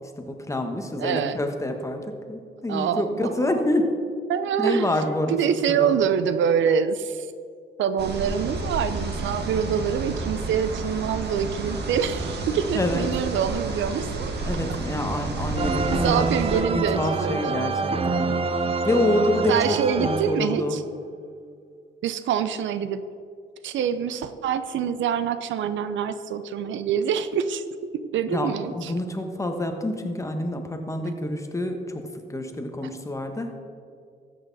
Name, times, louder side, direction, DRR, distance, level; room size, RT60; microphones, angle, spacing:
voice 1, 0.2-3.9 4.6-5.4 5.7-6.0 12.7-13.2 14.4-16.2 16.5-18.4 18.6-20.8 28.3-33.5, left 1 dB, 15° left, 4 dB, 1.3 m, -27 dB
voice 2, 1.0-1.4 2.7-3.4 4.3-4.9 5.3-7.3 7.8-14.3 15.9-17.6 19.5-20.8 22.0-23.0 23.6-28.9, right 8 dB, 70° right, 12 dB, 0.6 m, -25 dB
sound 1, 8.0-16.6, right 3 dB, 55° right, 1.8 m, -31 dB
sound 2, 15.6-20.8, right 4 dB, 30° right, 0.6 m, -26 dB
13.5 x 8.5 x 4.1 m, 2.2 s
cardioid pair, 90°, 20 cm